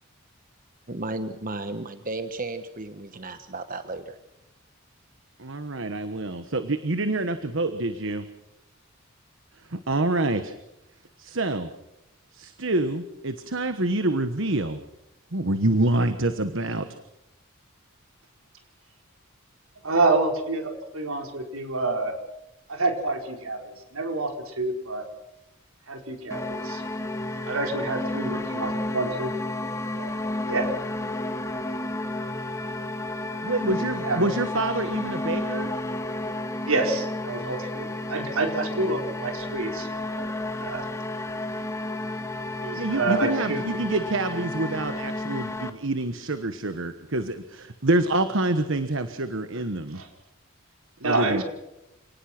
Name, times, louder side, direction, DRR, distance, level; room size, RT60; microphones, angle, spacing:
voice 1, 0.9-4.0, right 2 dB, 40° right, 9 dB, 1.2 m, -34 dB
voice 2, 5.4-8.3 9.7-10.5 11.2-11.7 12.3-14.8 15.3-16.9 33.4-35.7 42.8-50.0 51.0-51.4, right 2 dB, 65° right, 9 dB, 1.3 m, -26 dB
voice 3, 19.8-22.2 22.7-25.1 25.9-26.8 27.4-29.3 29.6-30.1 30.5-30.7 33.7-34.3 36.7-40.3 40.6-40.9 42.6-43.6 49.5-49.6 49.9-50.1 51.0-51.4, right 3 dB, 85° right, 4 dB, 4.8 m, -28 dB
sound 1, 26.3-45.7, left 2 dB, 15° left, 1.9 m, -32 dB
28.5 x 19.5 x 6.1 m, 0.90 s
head